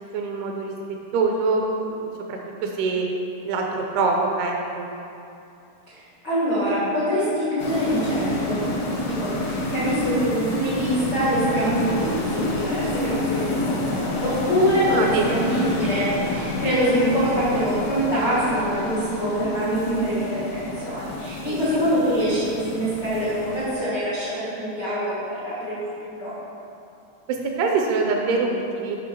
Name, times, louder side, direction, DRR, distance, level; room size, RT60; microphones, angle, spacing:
voice 1, 0.1-0.7 1.1-3.1 3.4-4.9 14.9-15.4 21.5-21.6 27.3-29.0, right 4 dB, 80° right, 1 dB, 2.5 m, -24 dB
voice 2, 6.2-8.6 9.0-26.3, equal, 85° left, -10 dB, 0.9 m, -24 dB
sound 1, 7.6-23.7, left 2 dB, 70° left, 1.6 m, -28 dB
8.3 x 5.8 x 4.5 m, 2.7 s
omnidirectional pair, 4.9 m